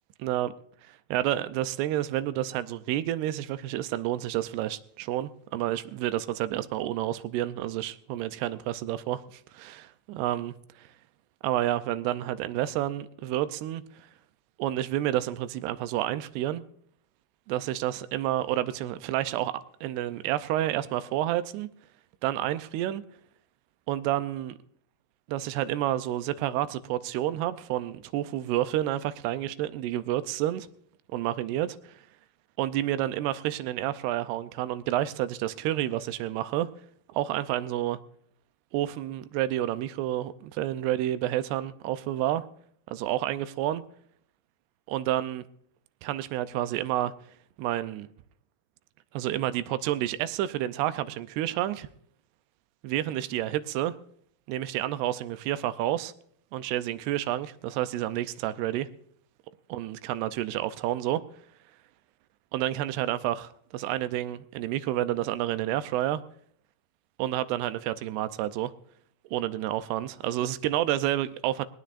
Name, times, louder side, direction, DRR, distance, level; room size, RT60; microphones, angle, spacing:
voice 1, 0.2-0.5 0.8-10.9 11.4-13.8 14.6-16.6 17.5-21.7 22.2-23.0 23.9-24.6 25.3-30.7 31.1-31.8 32.6-36.7 37.1-38.0 38.7-42.4 42.9-43.8 44.9-45.4 46.0-47.1 47.6-48.1 49.1-51.9 52.8-53.9 54.5-56.1 56.5-58.9 59.7-61.2 62.5-66.2 67.2-68.7 69.3-71.7, right 13 dB, 90° right, 2.8 m, -29 dB
19.0 x 18.5 x 2.5 m
omnidirectional pair, 4.6 m